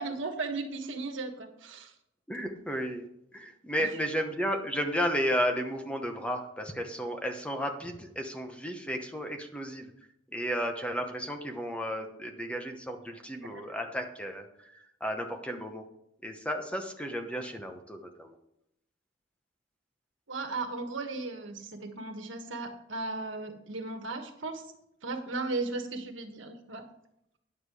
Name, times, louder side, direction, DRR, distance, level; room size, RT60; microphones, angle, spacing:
voice 1, 0.0-1.9 3.8-3.9 13.5-13.6 20.3-24.7 25.0-26.8, right 3 dB, 85° right, 5 dB, 1.5 m, -36 dB
voice 2, 2.3-3.1 3.3-9.9 10.3-15.8 16.2-18.4, equal, 5° left, 4 dB, 0.9 m, -33 dB
10.0 x 7.4 x 4.8 m, 0.78 s
head